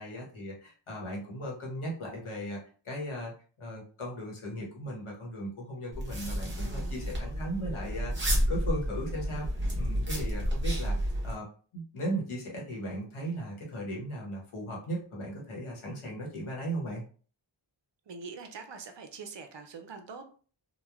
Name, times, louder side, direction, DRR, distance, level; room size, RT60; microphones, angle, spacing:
voice 1, 0.0-2.6 2.8-3.3 3.6-9.5 9.8-11.5 11.7-17.0, right 1 dB, 80° left, -2 dB, 1.1 m, -37 dB
sound 1, 5.9-11.3, equal, 25° right, 0.8 m, -31 dB
voice 2, 18.1-20.2, right 5 dB, 60° right, 6 dB, 0.6 m, -43 dB
3.0 x 2.2 x 2.3 m, 0.41 s
wide cardioid pair, 95°, 49 cm